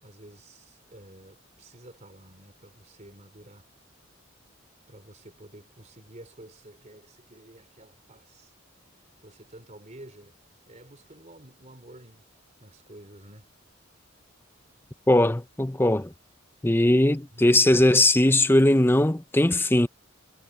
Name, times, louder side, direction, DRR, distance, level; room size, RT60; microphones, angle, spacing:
voice 1, 0.0-3.7 4.9-8.5 9.2-10.4 10.7-12.3 12.6-13.5 17.3-17.5, right 1 dB, 35° right, 3.8 m, -50 dB
voice 2, 15.1-16.1 16.6-19.9, left 1 dB, 10° left, 0.6 m, -20 dB
head